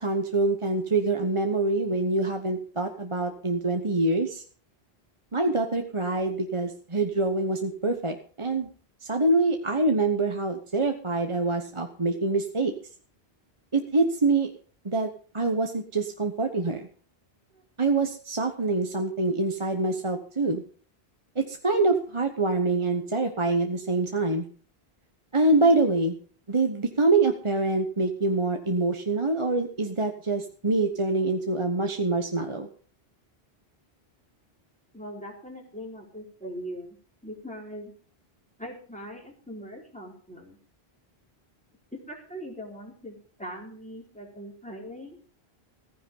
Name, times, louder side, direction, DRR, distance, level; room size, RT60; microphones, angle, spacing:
voice 1, 0.0-4.4 5.3-8.7 9.1-12.7 13.7-14.5 14.8-15.1 15.3-16.8 17.8-20.6 21.4-24.4 25.3-26.1 26.5-32.7, right 2 dB, 30° right, 4 dB, 1.2 m, -25 dB
voice 2, 34.9-37.0 37.2-37.9 38.6-40.6 42.1-45.2, equal, 5° left, -1 dB, 4.4 m, -41 dB
15.0 x 10.0 x 5.5 m, 0.41 s
omnidirectional pair, 1.1 m